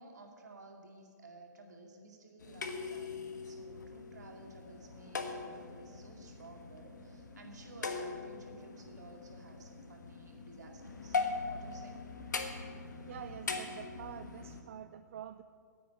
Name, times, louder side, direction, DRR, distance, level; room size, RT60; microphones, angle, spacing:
voice 1, 0.0-11.2 11.5-12.0, right 2 dB, 65° right, 2 dB, 2.4 m, -54 dB
sound 1, 2.4-14.6, left 4 dB, 70° left, 1.4 m, -41 dB
voice 2, 13.0-15.4, right 10 dB, 45° right, 10 dB, 0.4 m, -47 dB
10.0 x 8.6 x 9.3 m, 2.2 s
figure-of-eight pair, 130°, 10 cm